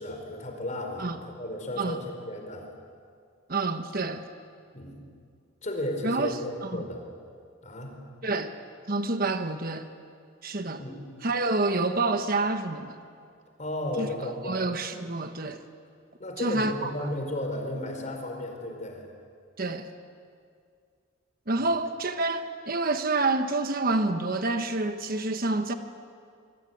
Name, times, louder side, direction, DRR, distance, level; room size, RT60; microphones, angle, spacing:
voice 1, 0.0-2.7 4.7-5.0 5.6-7.0 7.6-7.9 10.8-11.0 13.6-14.7 16.2-19.1 21.5-21.7, left 1 dB, 35° left, 3 dB, 4.8 m, -34 dB
voice 2, 3.5-4.2 6.0-6.3 6.6-6.8 8.2-8.5 8.9-9.9 10.4-10.8 11.2-13.0 14.0-14.1 14.4-15.6 16.4-16.9 19.6-19.9 21.5-25.7, right 3 dB, 45° right, 8 dB, 1.3 m, -28 dB
25.5 x 24.0 x 9.4 m, 2.2 s
head